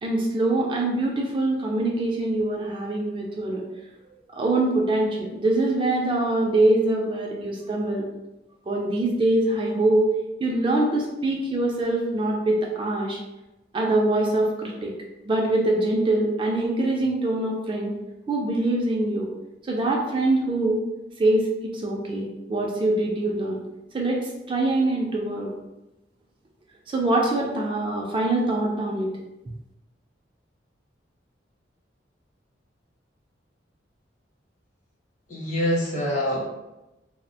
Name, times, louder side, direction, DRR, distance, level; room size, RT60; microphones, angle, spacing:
voice 1, 0.0-3.6 4.3-8.0 8.7-10.0 10.4-13.2 13.7-14.9 15.2-17.9 18.3-19.3 19.6-20.8 21.2-21.5 21.7-23.6 23.9-25.5 26.9-29.1, right 2 dB, 30° right, -1 dB, 0.3 m, -24 dB
voice 2, 35.3-36.4, equal, 45° left, -4 dB, 0.7 m, -25 dB
2.3 x 2.0 x 2.7 m, 0.98 s
head